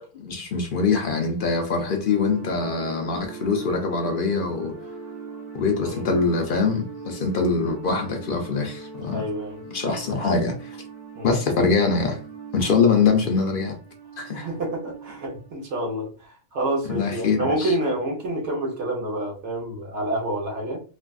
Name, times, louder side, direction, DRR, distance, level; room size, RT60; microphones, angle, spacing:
voice 1, 0.0-4.7 5.5-9.3 9.7-10.8 11.2-12.2 12.5-13.8 14.2-14.5 16.9-17.7, left 4 dB, 60° left, 0.5 m, -23 dB
sound 1, 2.1-15.7, right 4 dB, 40° right, 0.8 m, -41 dB
voice 2, 9.1-9.6 11.1-11.3 14.3-20.8, right 1 dB, 60° right, 1.2 m, -28 dB
3.3 x 2.3 x 2.3 m
omnidirectional pair, 1.4 m